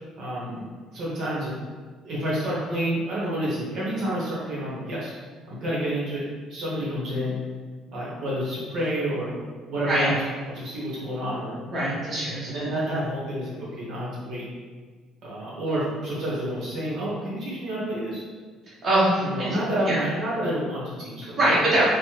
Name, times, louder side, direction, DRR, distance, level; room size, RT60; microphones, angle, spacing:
voice 1, 0.2-0.6 0.9-1.5 2.0-5.1 5.5-6.2 6.5-7.4 7.9-9.3 9.7-11.6 12.4-14.4 15.2-18.2 19.2-21.5, right 1 dB, 65° right, -7 dB, 1.0 m, -29 dB
voice 2, 11.7-12.4 18.8-19.5 19.9-20.0 21.4-21.9, right 1 dB, 40° right, -8 dB, 1.0 m, -22 dB
3.3 x 2.1 x 2.9 m, 1.5 s
cardioid pair, 95°, 0 cm